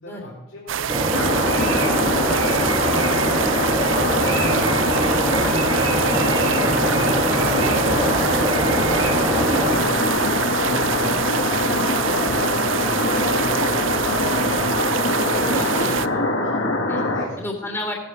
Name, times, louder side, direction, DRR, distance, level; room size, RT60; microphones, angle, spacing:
voice 1, 0.0-8.0 8.7-14.3 15.1-17.4 17.8-17.9, left 1 dB, 85° left, -7 dB, 4.1 m, -42 dB
sound 1, 0.7-16.1, right 9 dB, 70° right, 0.5 m, -26 dB
sound 2, 0.9-9.8, right 1 dB, 25° right, 1.3 m, -24 dB
sound 3, 1.1-17.2, left 1 dB, 70° left, 1.9 m, -23 dB
voice 2, 7.9-8.8 12.9-13.6 15.0-16.2 16.9-17.0 17.4-17.9, left 1 dB, 10° left, 1 dB, 2.9 m, -34 dB
18.0 x 9.5 x 6.4 m, 0.99 s
head